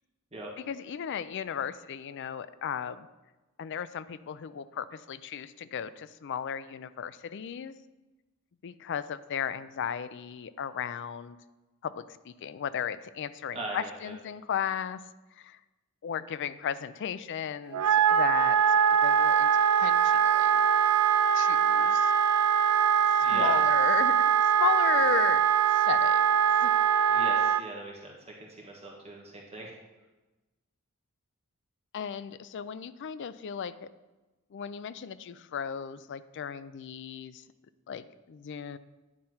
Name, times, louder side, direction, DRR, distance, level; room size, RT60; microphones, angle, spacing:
voice 1, 0.6-3.1 3.6-7.7 8.6-11.4 11.8-15.0 15.4-15.6 16.0-20.6 21.3-22.1 23.3-24.3 24.6-25.4 25.7-26.7 31.9-33.9 34.5-37.4 37.9-38.8, left 8 dB, 55° left, 14 dB, 0.4 m, -35 dB
voice 2, 13.5-14.1 23.2-23.5 27.1-29.7, right 2 dB, 30° right, -2 dB, 1.6 m, -40 dB
Wind instrument woodwind instrument, 17.7-27.6, right 8 dB, 85° right, 0.4 m, -23 dB
9.7 x 4.3 x 5.5 m, 1.1 s
head